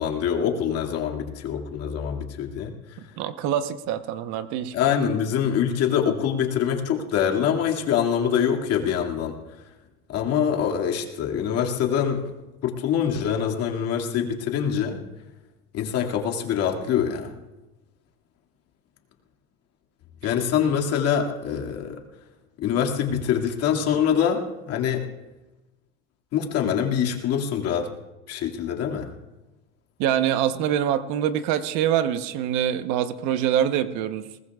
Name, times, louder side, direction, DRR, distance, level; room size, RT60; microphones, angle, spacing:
voice 1, 0.0-2.7 4.7-9.3 10.1-12.3 12.6-15.0 15.7-17.3 20.2-22.0 22.6-25.1 26.3-27.9 28.3-29.1, left 8 dB, 45° left, 2 dB, 2.2 m, -24 dB
voice 2, 3.2-4.7 30.0-34.3, right 10 dB, 60° right, 10 dB, 1.0 m, -24 dB
22.0 x 19.0 x 2.4 m, 1.1 s
supercardioid pair, 130°, 33 cm